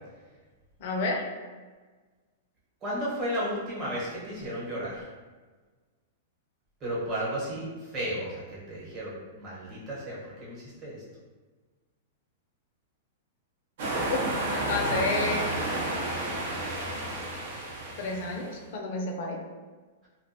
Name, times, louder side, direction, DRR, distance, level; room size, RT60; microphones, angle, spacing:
voice 1, 0.8-1.2 14.1-14.2 14.7-15.5 18.0-19.4, left 3 dB, 55° left, 0 dB, 0.4 m, -30 dB
voice 2, 2.8-5.0 6.8-11.0, equal, 30° right, -7 dB, 1.0 m, -34 dB
Waves on Brighton beach, 13.8-18.5, right 1 dB, 65° right, 0.6 m, -31 dB
2.4 x 2.1 x 2.7 m, 1.4 s
hypercardioid pair, 145°, 0 cm